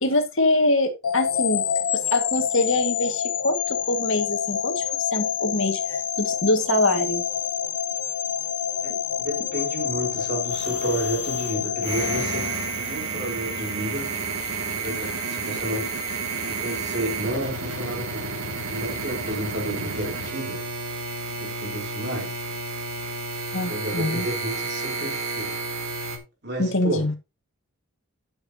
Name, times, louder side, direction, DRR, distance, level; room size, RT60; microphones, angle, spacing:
voice 1, 0.0-1.7 2.1-4.9 5.1-7.2 8.9-9.0 23.5-24.3 26.6-27.1, left 2 dB, 60° left, 2.1 m, -24 dB
sound 1, 1.0-13.2, left 8 dB, 90° left, 1.4 m, -27 dB
voice 2, 9.2-14.1 14.8-16.1 16.5-18.3 18.7-20.7 21.4-22.4 23.6-25.6 26.4-27.1, right 1 dB, 45° right, 3.9 m, -31 dB
sound 2, 10.5-11.5 11.8-26.2, right 3 dB, 70° right, 2.6 m, -31 dB
13.5 x 7.0 x 3.0 m
head